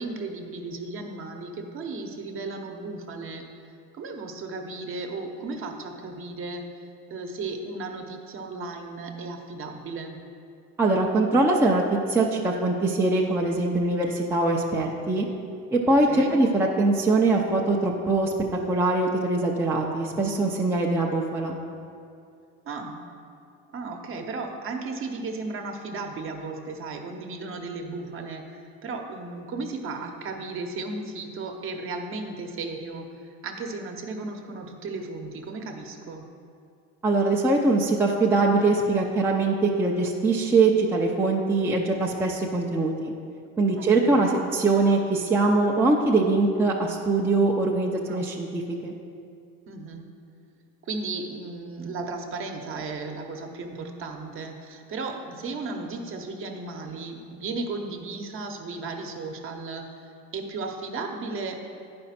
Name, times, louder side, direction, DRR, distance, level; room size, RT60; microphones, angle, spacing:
voice 1, 0.0-3.4 3.9-6.6 7.1-10.2 16.1-16.4 22.6-23.0 23.7-36.2 43.8-44.4 48.0-48.3 49.7-50.1 50.9-59.9 60.3-61.6, right 3 dB, 40° right, 4 dB, 1.0 m, -35 dB
voice 2, 10.8-15.3 15.7-18.3 18.7-21.6 37.0-43.1 43.6-48.9, right 2 dB, 5° right, -2 dB, 0.6 m, -22 dB
9.8 x 5.3 x 5.8 m, 2.4 s
supercardioid pair, 130°, 34 cm